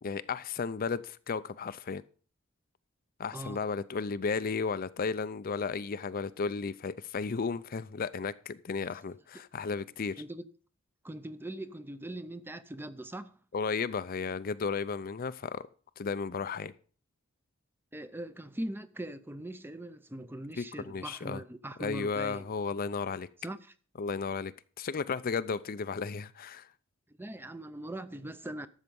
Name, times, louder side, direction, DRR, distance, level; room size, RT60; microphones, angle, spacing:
voice 1, 0.0-2.0 3.2-10.2 13.5-15.6 16.0-16.7 20.6-21.4 21.8-23.3 24.0-26.7, left 5 dB, 45° left, 0.5 m, -34 dB
voice 2, 11.0-13.3 17.9-22.5 23.4-23.6 27.2-28.7, right 1 dB, 10° right, 0.6 m, -41 dB
12.5 x 7.3 x 5.3 m
head